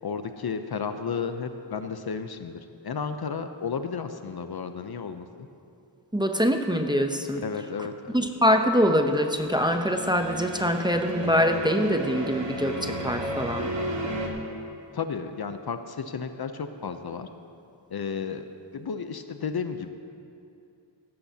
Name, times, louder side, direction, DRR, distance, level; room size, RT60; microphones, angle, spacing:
voice 1, 0.0-2.6 2.8-5.5 7.4-8.2 10.6-10.7 14.9-17.3 17.9-18.5 18.7-19.9, left 6 dB, 50° left, 8 dB, 0.7 m, -33 dB
voice 2, 6.1-7.4 8.1-13.7, equal, 10° right, 4 dB, 0.7 m, -24 dB
sound 1, 9.2-14.3, right 1 dB, 65° right, 1.8 m, -33 dB
16.0 x 14.5 x 2.8 m, 2.6 s
wide cardioid pair, 90°, 47 cm